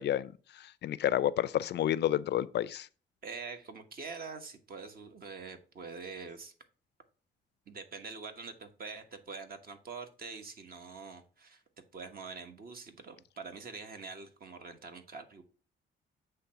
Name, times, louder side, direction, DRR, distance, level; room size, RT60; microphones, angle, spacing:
voice 1, 0.0-2.9, left 11 dB, 60° left, 0.4 m, -30 dB
voice 2, 3.2-6.5 7.7-11.6 11.9-15.4, right 4 dB, 50° right, 1.4 m, -45 dB
8.1 x 3.3 x 5.7 m
cardioid pair, 90°, 20 cm